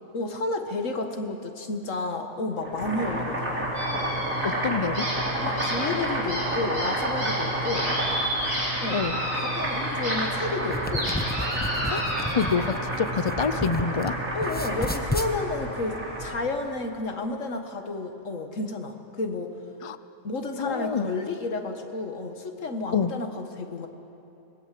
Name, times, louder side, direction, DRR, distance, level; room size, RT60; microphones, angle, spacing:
voice 1, 0.1-3.5 5.4-7.9 8.8-9.1 9.4-11.1 14.3-19.5 20.2-23.9, left 2 dB, 65° left, 5 dB, 1.9 m, -31 dB
Boiling, 2.6-16.4, right 1 dB, 70° right, 4.2 m, -30 dB
sound 1, 3.7-4.6 4.9-10.1 10.5-12.5, equal, 55° right, 7.1 m, -32 dB
voice 2, 4.4-5.0 8.9-9.2 11.9-12.0 12.3-14.1 19.8-20.0 20.6-21.1 22.9-23.1, left 5 dB, 40° left, 12 dB, 0.4 m, -27 dB
sound 2, 10.6-14.1 14.4-15.3, left 1 dB, 10° left, 0.7 m, -32 dB
25.5 x 20.0 x 7.6 m, 2.9 s
omnidirectional pair, 1.5 m